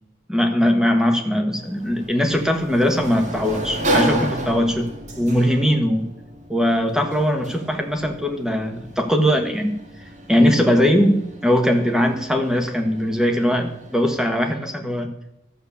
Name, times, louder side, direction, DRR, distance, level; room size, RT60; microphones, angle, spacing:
voice 1, 0.3-4.9 5.2-6.1 6.5-9.8 10.3-15.1, equal, 5° right, 5 dB, 1.3 m, -20 dB
Sliding door, 1.5-14.2, right 1 dB, 40° right, 1.7 m, -32 dB
12.5 x 6.6 x 8.3 m, 0.87 s
head